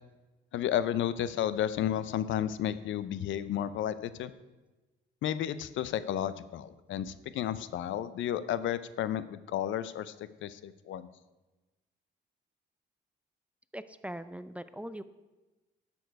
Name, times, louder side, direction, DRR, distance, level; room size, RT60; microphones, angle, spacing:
voice 1, 0.5-4.3 5.2-10.1 10.4-11.1, left 10 dB, 75° left, 15 dB, 0.5 m, -32 dB
voice 2, 13.7-15.0, right 1 dB, 5° right, 13 dB, 0.4 m, -41 dB
10.5 x 7.1 x 4.6 m, 1.1 s
cardioid pair, 90°, 20 cm